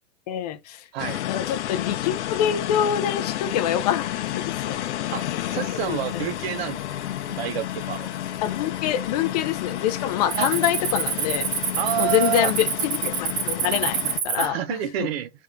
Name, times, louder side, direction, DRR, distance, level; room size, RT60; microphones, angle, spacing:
voice 1, 0.3-0.8 1.3-4.8 5.7-6.2 8.4-11.5 12.0-15.1, left 10 dB, 35° left, 0.4 m, -26 dB
sound 1, 1.0-14.2, left 13 dB, 85° left, 0.6 m, -31 dB
voice 2, 5.1-7.0 7.3-8.1 10.4-10.6 11.8-12.5 14.0-14.1 14.4-15.3, right 12 dB, 60° right, 0.6 m, -29 dB
Cricket, 5.5-5.9 6.4-6.8 7.4-7.5 8.1-8.7 9.0-9.3 9.6-14.5, right 7 dB, 75° right, 1.1 m, -27 dB
3.4 x 2.6 x 3.6 m
supercardioid pair, 165°, 34 cm